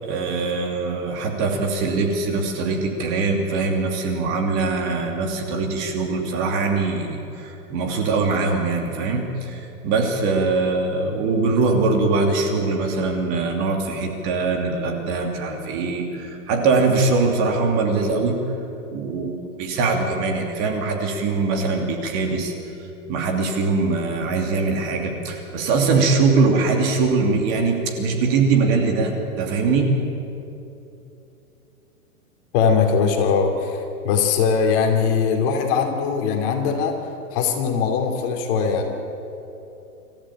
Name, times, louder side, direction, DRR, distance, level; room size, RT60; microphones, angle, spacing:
voice 1, 0.0-18.4 18.9-22.5 22.8-29.9, right 4 dB, 30° right, 3 dB, 2.8 m, -22 dB
voice 2, 32.5-37.0 37.3-38.9, left 6 dB, 35° left, 3 dB, 2.8 m, -21 dB
27.0 x 14.0 x 8.8 m, 2.9 s
hypercardioid pair, 150°, 45 cm